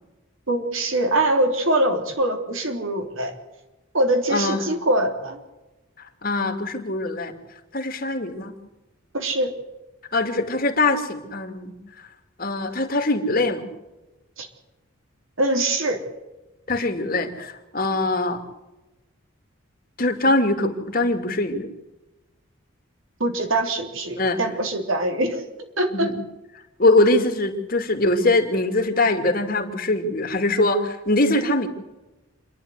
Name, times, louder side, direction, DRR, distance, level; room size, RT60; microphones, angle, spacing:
voice 1, 0.5-3.3 3.9-5.4 9.1-9.5 14.4-14.5 15.4-16.0 23.2-25.4 25.8-26.1, right 1 dB, 75° right, 4 dB, 3.5 m, -23 dB
voice 2, 6.2-7.3 7.7-8.5 10.1-11.8 12.4-13.7 16.7-18.4 20.0-21.7 24.2-24.4 25.9-26.1 26.8-31.7, left 2 dB, 45° left, 5 dB, 2.6 m, -22 dB
28.0 x 11.5 x 8.0 m, 1.1 s
head